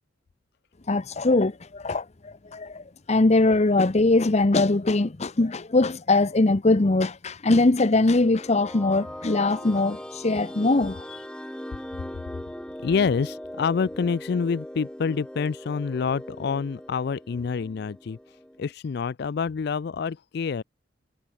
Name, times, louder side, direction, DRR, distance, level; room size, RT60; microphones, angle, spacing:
voice 1, 0.9-11.2, left 2 dB, 35° left, 0.8 m, -22 dB
sound 1, 8.0-18.7, equal, 5° left, 0.7 m, -40 dB
voice 2, 12.8-20.6, left 5 dB, 60° left, 0.4 m, -27 dB
head